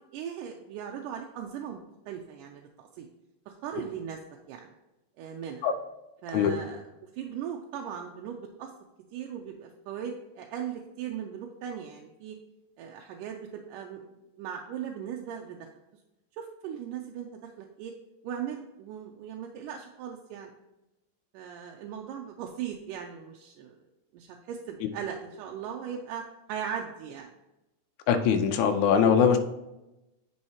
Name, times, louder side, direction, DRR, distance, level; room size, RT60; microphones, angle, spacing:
voice 1, 0.1-1.8 2.1-3.1 3.5-4.2 4.5-4.7 5.2-5.7 6.2-8.7 9.1-12.4 12.8-14.0 14.4-15.6 16.3-17.9 18.2-20.5 21.3-23.8 24.1-26.2 26.5-27.3, right 8 dB, 80° right, 1 dB, 2.2 m, -38 dB
voice 2, 28.1-29.4, left 7 dB, 75° left, 6 dB, 1.9 m, -22 dB
9.5 x 5.5 x 2.9 m, 0.96 s
omnidirectional pair, 3.9 m